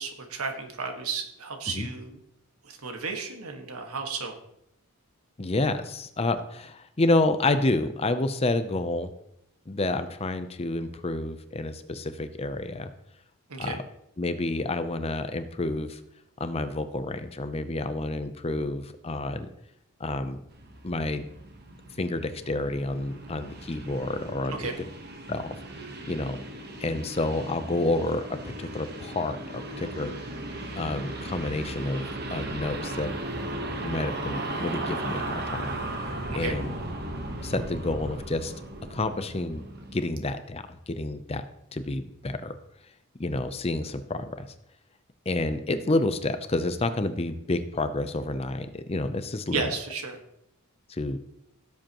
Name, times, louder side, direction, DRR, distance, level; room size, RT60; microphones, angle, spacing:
voice 1, 0.0-2.2 2.6-4.4 13.5-13.8 24.5-24.8 36.3-36.6 49.5-50.2, right 4 dB, 85° right, 4 dB, 1.7 m, -33 dB
voice 2, 5.4-9.1 9.7-12.9 13.6-13.8 14.2-16.0 16.4-19.5 20.0-20.4 20.8-21.3 22.0-24.7 25.3-25.6 26.1-26.4 26.8-30.3 30.7-33.1 33.8-35.8 36.3-36.7 37.4-38.5 38.9-39.7 39.9-41.4 41.7-42.6 43.2-44.5 45.3-49.7 50.9-51.2, left 2 dB, 25° left, 10 dB, 0.6 m, -29 dB
sound 1, 20.5-40.1, right 1 dB, 45° right, 1.3 m, -36 dB
16.0 x 7.6 x 3.0 m, 0.77 s
head